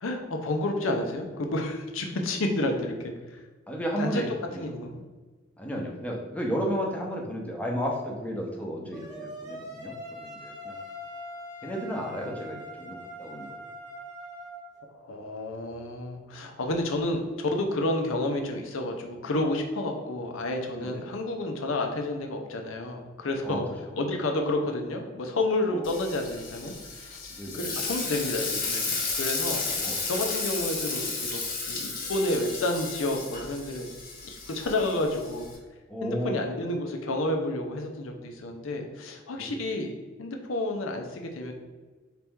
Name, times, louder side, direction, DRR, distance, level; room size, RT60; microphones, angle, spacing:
voice 1, 0.0-3.1 4.0-4.2 4.6-5.0 14.9-23.6 24.0-26.7 27.0-27.3 27.6-29.7 30.1-31.4 31.7-33.9 34.2-35.5 36.0-41.5, left 2 dB, 85° left, 3 dB, 0.7 m, -30 dB
voice 2, 3.7-4.6 5.6-10.8 11.6-13.6 20.8-21.1 23.4-24.0 25.7-25.9 27.3-27.8 29.7-30.0 35.9-36.3 39.4-39.6, equal, 5° left, -1 dB, 0.6 m, -33 dB
sound 1, 8.9-14.7, equal, 20° right, 0.9 m, -42 dB
Frying (food), 25.8-35.6, left 4 dB, 45° left, 0.8 m, -33 dB
4.0 x 2.9 x 3.6 m, 1.3 s
head